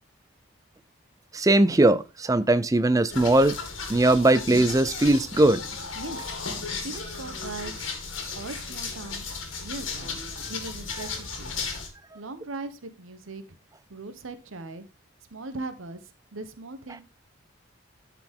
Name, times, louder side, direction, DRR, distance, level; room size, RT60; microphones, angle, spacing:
voice 1, 1.3-3.6 3.9-5.6, right 2 dB, 15° right, 0.4 m, -20 dB
sound 1, 3.1-11.9, left 4 dB, 75° left, 2.0 m, -35 dB
voice 2, 6.0-6.3 6.8-7.9 8.4-10.2 10.5-11.7 12.1-13.4 13.9-14.9 15.3-17.0, right 3 dB, 80° right, 1.0 m, -39 dB
11.5 x 4.9 x 3.6 m
head